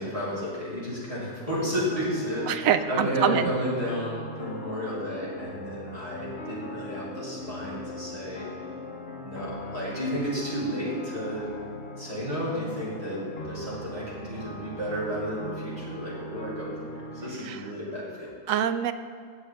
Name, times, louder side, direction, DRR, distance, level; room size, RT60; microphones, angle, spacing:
voice 1, 0.0-8.5 9.2-11.5 12.0-16.7 17.1-18.3, equal, 25° right, -8 dB, 3.3 m, -32 dB
sound 1, 1.4-17.3, left 1 dB, 55° left, 1.2 m, -40 dB
voice 2, 2.5-3.5 17.5-17.6 18.5-18.9, right 9 dB, 85° right, 10 dB, 1.0 m, -25 dB
17.0 x 6.4 x 3.5 m, 2.1 s
omnidirectional pair, 1.4 m